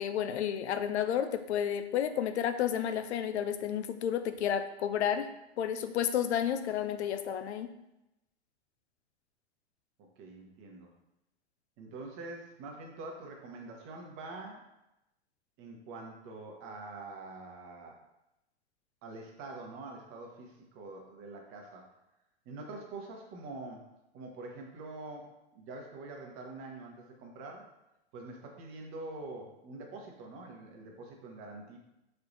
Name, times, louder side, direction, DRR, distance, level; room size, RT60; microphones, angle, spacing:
voice 1, 0.0-5.3 5.6-7.7, left 9 dB, 85° left, 9 dB, 0.5 m, -31 dB
voice 2, 10.0-10.9 11.8-14.7 15.6-18.0 19.0-21.9 22.4-23.8 24.1-27.7 28.1-31.8, right 2 dB, 40° right, 1 dB, 1.0 m, -45 dB
4.4 x 3.3 x 2.6 m, 0.91 s
hypercardioid pair, 110°, 33 cm